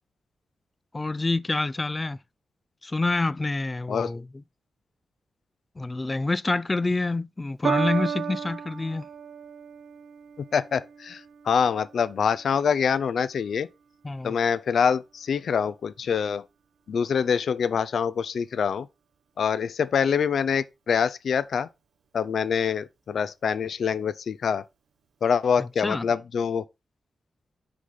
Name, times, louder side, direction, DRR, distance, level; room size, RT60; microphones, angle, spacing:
voice 1, 0.9-2.2 2.8-4.4 5.8-9.1 14.0-14.4 25.6-26.1, left 3 dB, 20° left, 0.3 m, -27 dB
Piano, 7.6-14.2 15.0-15.1, right 7 dB, 90° right, 1.1 m, -35 dB
voice 2, 10.5-13.7 14.2-16.4 16.9-18.9 19.4-21.7 22.1-24.6 25.2-26.6, left 7 dB, 70° left, 0.6 m, -25 dB
6.2 x 3.9 x 5.8 m
wide cardioid pair, 130°, 0 cm